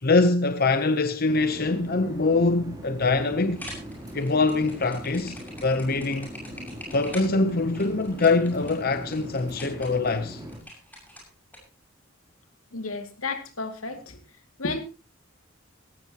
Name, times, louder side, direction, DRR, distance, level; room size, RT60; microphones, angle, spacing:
voice 1, 0.0-3.6 4.1-6.3 6.9-10.4, left 3 dB, 45° left, 0.8 m, -23 dB
sound 1, 1.3-10.6, equal, 20° right, 3.2 m, -40 dB
sound 2, 3.5-11.6, left 1 dB, 10° left, 6.5 m, -44 dB
voice 2, 12.7-14.2 14.6-14.8, left 3 dB, 85° left, 2.5 m, -32 dB
17.5 x 15.0 x 3.0 m
head